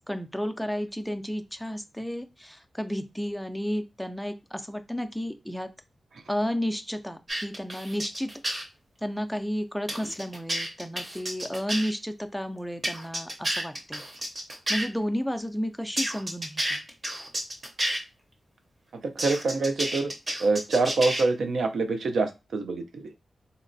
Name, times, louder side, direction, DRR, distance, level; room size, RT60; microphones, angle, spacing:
voice 1, 0.1-5.7 6.3-8.3 9.0-14.0 14.7-16.9, equal, ahead, 7 dB, 0.3 m, -32 dB
sound 1, 7.3-8.6 9.9-11.9 12.8-14.8 16.0-18.0 19.2-21.2, right 1 dB, 30° right, 0.7 m, -31 dB
voice 2, 18.9-20.1 20.4-23.2, right 3 dB, 80° right, 6 dB, 0.4 m, -26 dB
3.8 x 2.1 x 2.6 m, 0.27 s
wide cardioid pair, 125°, 0 cm